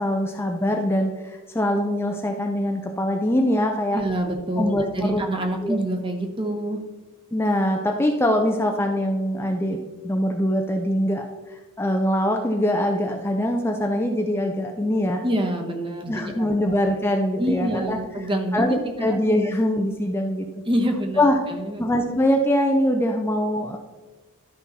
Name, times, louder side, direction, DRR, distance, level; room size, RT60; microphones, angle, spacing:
voice 1, 0.0-4.0 4.6-5.3 5.6-5.8 7.3-9.8 10.0-15.2 16.1-18.0 18.5-20.5 21.2-21.4 21.8-23.8, left 1 dB, 10° left, 3 dB, 0.5 m, -23 dB
voice 2, 3.9-6.8 15.2-16.5 17.4-19.2 20.7-21.2 21.5-21.8, right 1 dB, 25° right, 3 dB, 1.1 m, -26 dB
12.5 x 5.6 x 4.1 m, 1.3 s
head